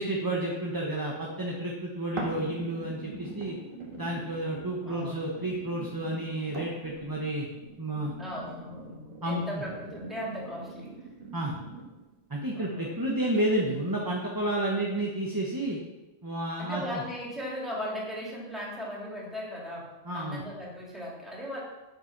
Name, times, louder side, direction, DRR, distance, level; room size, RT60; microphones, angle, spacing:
voice 1, 0.0-3.6 4.0-7.5 7.8-8.1 9.2-9.6 11.3-11.5 12.3-15.8 16.2-16.8 20.1-20.4, right 1 dB, 15° right, -2 dB, 1.1 m, -31 dB
sound 1, 2.2-12.2 12.7-12.8, right 2 dB, 45° right, 1.8 m, -43 dB
voice 2, 4.9-5.6 8.2-9.0 9.2-11.1 12.5-13.0 16.6-21.6, equal, ahead, -5 dB, 3.2 m, -38 dB
7.8 x 7.7 x 6.0 m, 1.1 s
omnidirectional pair, 1.3 m